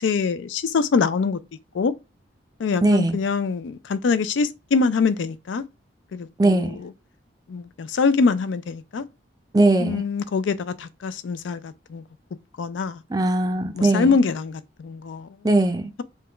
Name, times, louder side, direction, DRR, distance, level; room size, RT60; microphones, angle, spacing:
voice 1, 0.0-1.4 1.7-1.9 2.6-5.6 6.1-6.9 7.5-9.0 9.8-12.0 12.6-13.0 13.7-15.3, left 4 dB, 80° left, 0.4 m, -24 dB
voice 2, 2.8-3.2 6.4-6.8 9.5-10.0 13.1-14.1 15.4-15.9, right 2 dB, 20° right, 0.4 m, -19 dB
3.4 x 2.2 x 3.0 m
head